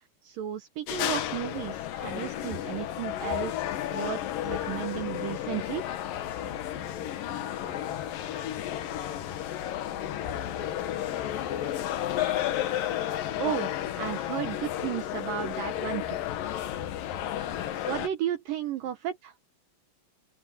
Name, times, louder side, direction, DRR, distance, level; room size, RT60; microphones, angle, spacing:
voice 1, 0.2-3.5 3.9-5.9 13.4-13.7 14.0-16.2 17.9-19.3, right 11 dB, 75° right, 2.2 m, -34 dB
sound 1, 0.9-18.1, left 12 dB, 65° left, 2.6 m, -32 dB
voice 2, 6.4-11.6 16.8-17.2 17.5-17.6 18.8-18.9, left 4 dB, 85° left, 7.5 m, -50 dB
omnidirectional pair, 5.0 m